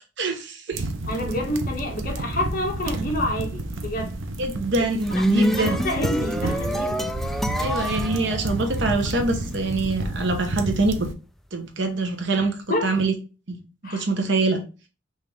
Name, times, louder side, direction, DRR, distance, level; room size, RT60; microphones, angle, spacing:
voice 1, 0.2-0.9 4.4-5.8 7.6-11.1 11.5-12.5 12.8-13.1 13.5-13.6 13.9-14.6, right 2 dB, 65° right, 1.1 m, -24 dB
sound 1, 0.7-11.1, right 2 dB, 85° right, 0.8 m, -30 dB
voice 2, 1.1-4.2 5.1-5.2 5.6-7.0 12.3-12.4 12.7-12.9 13.8-14.0, left 1 dB, 45° left, 1.6 m, -28 dB
sound 2, 4.8-9.1, equal, ahead, 0.3 m, -26 dB
5.7 x 2.9 x 3.3 m
head